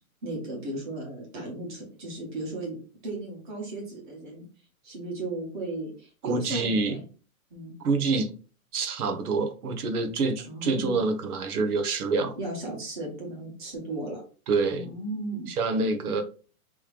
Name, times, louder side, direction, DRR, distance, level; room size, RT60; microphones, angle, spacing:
voice 1, 0.2-4.4 4.8-7.0 7.5-7.7 10.5-11.0 12.3-14.2 14.8-15.5, right 2 dB, 35° right, 1.6 m, -35 dB
voice 2, 6.2-7.0 7.8-8.3 8.7-12.3 14.5-14.9 15.6-16.2, right 3 dB, 85° right, 1.0 m, -26 dB
3.4 x 3.1 x 3.3 m
hypercardioid pair, 175°, 44 cm